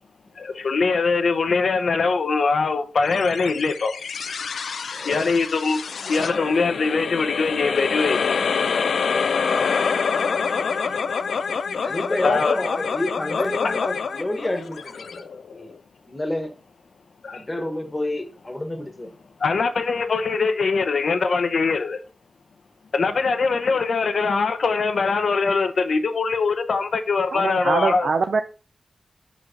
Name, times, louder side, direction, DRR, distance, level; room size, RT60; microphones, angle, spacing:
voice 1, 0.4-3.9 5.0-8.4 12.2-12.6 17.2-17.5 19.4-22.0 22.9-28.1, left 4 dB, 70° left, 0.8 m, -22 dB
sound 1, 3.1-15.8, left 5 dB, 90° left, 0.4 m, -26 dB
voice 2, 4.9-5.3 11.8-15.7 16.1-16.5 17.3-19.1, left 1 dB, 20° left, 1.2 m, -29 dB
voice 3, 27.3-28.4, right 4 dB, 70° right, 0.4 m, -22 dB
5.5 x 5.1 x 5.0 m
wide cardioid pair, 125°, 0 cm